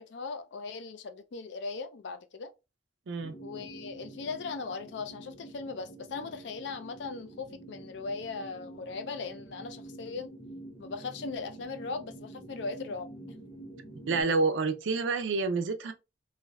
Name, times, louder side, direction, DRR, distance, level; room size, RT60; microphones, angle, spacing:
voice 1, 0.0-2.5 3.4-10.3 10.8-13.1, left 4 dB, 70° left, 0.4 m, -39 dB
sound 1, 3.2-14.2, right 1 dB, 15° left, 0.8 m, -47 dB
voice 2, 14.1-15.9, right 4 dB, 80° right, 0.4 m, -28 dB
3.3 x 2.6 x 2.3 m
head